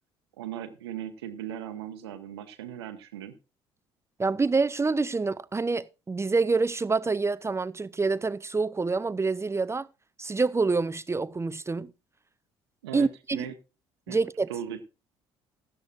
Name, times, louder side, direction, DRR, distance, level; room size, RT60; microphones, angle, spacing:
voice 1, 0.4-3.3 12.8-13.5 14.1-14.2 14.5-14.8, right 10 dB, 85° right, 1.0 m, -38 dB
voice 2, 4.2-9.9 10.2-11.9 12.9-13.5 14.1-14.5, right 4 dB, 20° right, 0.6 m, -27 dB
16.5 x 12.0 x 2.4 m
hypercardioid pair, 55°, 13 cm